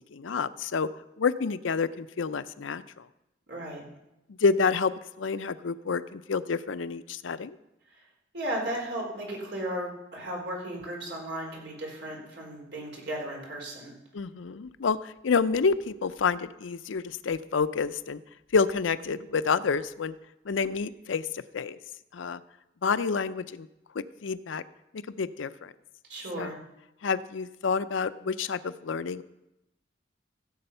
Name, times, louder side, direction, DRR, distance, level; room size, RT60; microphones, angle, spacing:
voice 1, 0.1-0.9 1.2-3.1 4.3-7.6 14.1-18.2 18.5-20.2 20.5-21.8 22.1-22.4 22.8-23.7 23.9-24.6 24.9-25.7 26.4-26.5 27.0-29.2, left 5 dB, 85° left, 14 dB, 0.5 m, -28 dB
voice 2, 3.5-3.8 8.3-13.9 26.1-26.6, right 1 dB, 65° right, -1 dB, 4.1 m, -35 dB
15.5 x 7.8 x 5.5 m, 0.91 s
head